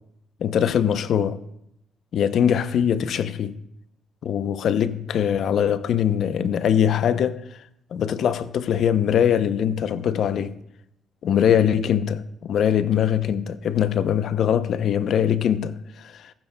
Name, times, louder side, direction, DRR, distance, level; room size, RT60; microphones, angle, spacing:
voice 1, 0.4-1.4 2.1-3.6 4.2-7.4 7.9-10.6 11.2-16.3, left 9 dB, 70° left, 0.6 m, -22 dB
15.0 x 14.5 x 2.2 m
cardioid pair, 90°, 0 cm